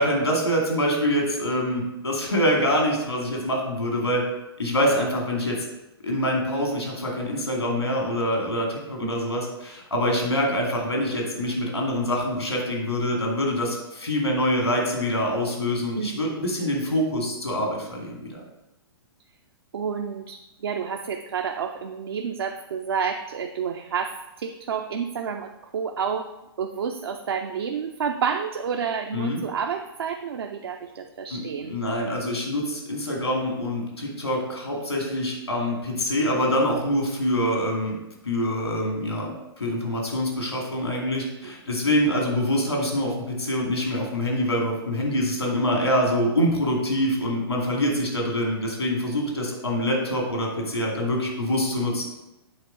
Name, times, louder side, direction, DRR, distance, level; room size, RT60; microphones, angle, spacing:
voice 1, 0.0-4.2 4.6-5.6 6.0-18.4 29.1-29.4 31.3-31.4 31.7-38.0 38.2-39.3 39.6-52.1, equal, 85° left, -1 dB, 2.3 m, -25 dB
voice 2, 16.0-16.3 19.7-26.3 26.6-31.8 41.4-41.5, right 6 dB, 65° right, 5 dB, 0.5 m, -30 dB
8.0 x 3.6 x 5.1 m, 0.94 s
figure-of-eight pair, 110°, 14 cm